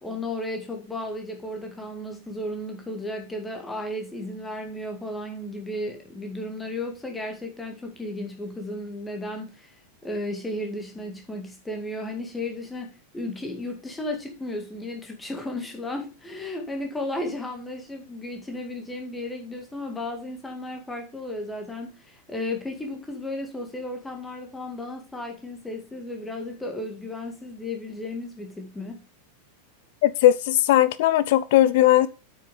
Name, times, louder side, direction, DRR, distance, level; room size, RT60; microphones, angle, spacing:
voice 1, 0.0-9.8 10.0-29.0, left 1 dB, 10° left, 2.1 m, -34 dB
voice 2, 30.0-32.1, left 13 dB, 50° left, 0.6 m, -18 dB
8.6 x 6.4 x 5.2 m
figure-of-eight pair, 90°, 0 cm